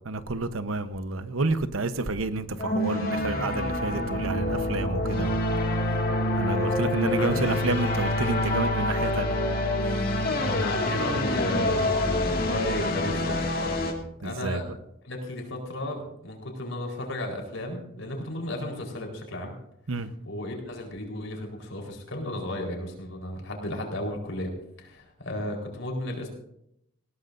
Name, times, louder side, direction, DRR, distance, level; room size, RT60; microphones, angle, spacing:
voice 1, 0.1-5.4 6.4-9.4 14.2-14.6 19.9-20.1, right 2 dB, 85° right, 1.0 m, -29 dB
sound 1, 2.6-13.9, left 1 dB, 45° left, 2.2 m, -26 dB
voice 2, 7.0-7.8 10.4-12.2 12.5-13.9 14.2-14.7 15.0-19.5 20.3-24.5 24.8-26.3, left 1 dB, 75° left, 4.3 m, -34 dB
19.5 x 17.0 x 2.6 m
head